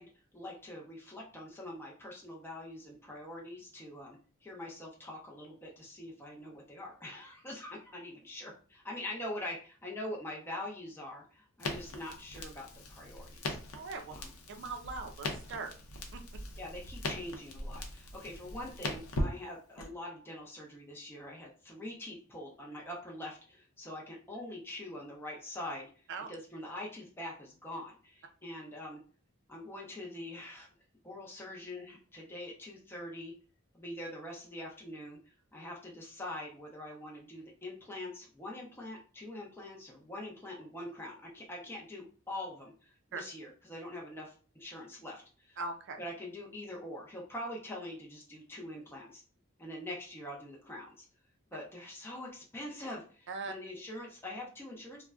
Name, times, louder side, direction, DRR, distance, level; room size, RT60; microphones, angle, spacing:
voice 1, 0.0-13.6 14.1-14.3 16.6-29.0 29.5-30.7 31.0-33.3 33.7-35.2 35.5-45.6 46.0-49.2 49.6-51.1 51.5-55.0, left 1 dB, 10° left, -3 dB, 0.5 m, -44 dB
Crackle, 11.6-19.9, left 1 dB, 90° left, 0.6 m, -40 dB
voice 2, 13.7-14.2 14.5-15.7 16.1-16.2 26.1-26.3 43.1-43.2 45.6-46.0 53.3-53.5, right 3 dB, 55° right, 6 dB, 0.4 m, -40 dB
3.4 x 2.1 x 2.3 m, 0.39 s
head